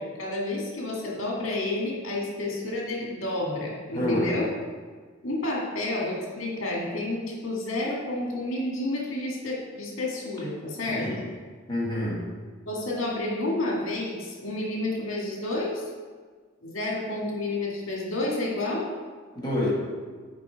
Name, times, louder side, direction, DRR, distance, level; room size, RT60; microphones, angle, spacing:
voice 1, 0.0-4.5 5.2-11.1 12.7-15.8 16.6-18.9, left 2 dB, 75° left, -3 dB, 1.9 m, -30 dB
voice 2, 3.9-4.3 10.9-11.3 11.7-12.3 19.3-19.7, left 1 dB, 20° left, -5 dB, 1.3 m, -28 dB
6.0 x 4.5 x 4.6 m, 1.5 s
head